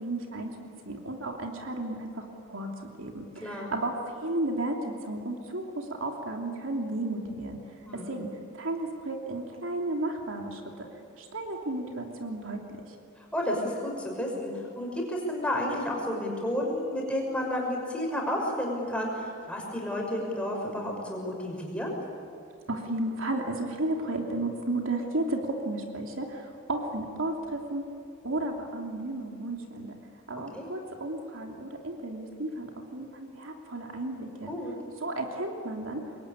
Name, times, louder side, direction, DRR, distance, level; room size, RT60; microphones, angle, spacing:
voice 1, 0.0-2.7 3.0-7.6 7.9-10.9 11.2-12.9 22.7-27.9 28.2-30.0 30.3-34.5 35.0-36.0, right 2 dB, 70° right, 2 dB, 2.9 m, -33 dB
voice 2, 3.4-3.7 7.9-8.2 13.2-21.9 30.5-30.7 34.5-34.7, left 1 dB, 5° left, -1 dB, 5.8 m, -31 dB
25.5 x 22.0 x 9.9 m, 2.4 s
head